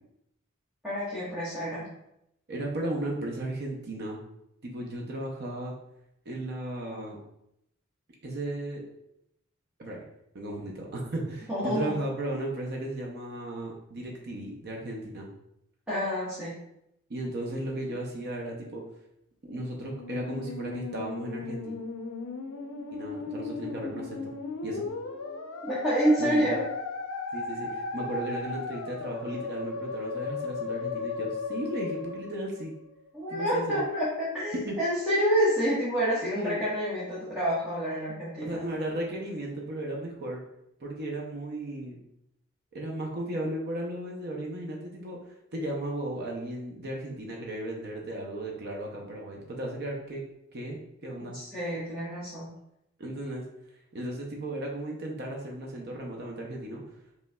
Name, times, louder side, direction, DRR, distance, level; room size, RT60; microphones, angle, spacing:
voice 1, 0.8-1.9 11.5-11.9 15.9-16.6 25.6-26.6 33.1-38.7 51.3-52.5, equal, 5° right, -12 dB, 1.2 m, -28 dB
voice 2, 2.5-4.2 4.6-5.7 6.3-7.2 8.2-8.8 9.8-10.0 10.3-15.3 17.1-18.8 19.4-21.8 22.9-24.2 24.6-24.8 26.2-26.5 27.3-32.8 33.3-33.8 34.7-34.8 36.2-36.6 38.4-40.4 40.8-42.0 42.7-50.2 50.5-51.4 53.0-53.4 53.9-56.8, right 1 dB, 50° right, -1 dB, 0.6 m, -35 dB
Musical instrument, 19.7-33.1, left 4 dB, 75° left, 0.5 m, -36 dB
5.4 x 3.1 x 2.2 m, 0.81 s
head